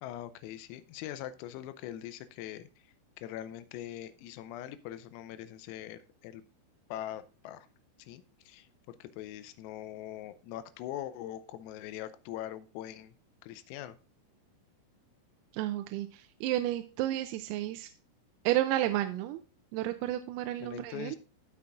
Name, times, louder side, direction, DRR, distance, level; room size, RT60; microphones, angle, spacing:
voice 1, 0.0-2.7 3.2-6.4 6.9-7.7 8.0-13.1 13.4-14.0 20.6-21.2, left 12 dB, 90° left, 12 dB, 3.4 m, -42 dB
voice 2, 15.5-17.9 18.5-19.4 19.7-21.2, right 14 dB, 90° right, 8 dB, 3.3 m, -31 dB
17.5 x 5.9 x 2.5 m, 0.35 s
omnidirectional pair, 6.0 m